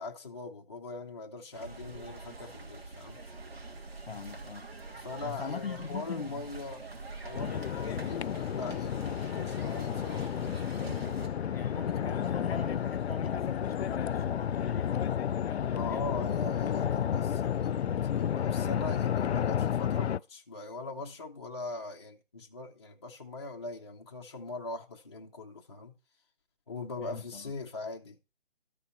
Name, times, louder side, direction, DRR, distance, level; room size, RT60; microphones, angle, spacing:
voice 1, 0.0-3.2 5.0-6.8 7.2-10.3 15.7-26.0 26.7-28.2, left 3 dB, 25° left, 0.8 m, -41 dB
sound 1, 1.5-11.3, right 3 dB, 70° right, 3.2 m, -45 dB
voice 2, 4.1-4.7 5.2-6.5 11.5-16.4 16.7-17.2 27.0-27.5, left 6 dB, 65° left, 1.1 m, -40 dB
sound 2, 7.1-12.7, right 1 dB, 35° right, 7.2 m, -57 dB
sound 3, 7.3-20.2, left 9 dB, 85° left, 0.5 m, -31 dB
13.0 x 4.8 x 5.7 m
hypercardioid pair, 175°, 31 cm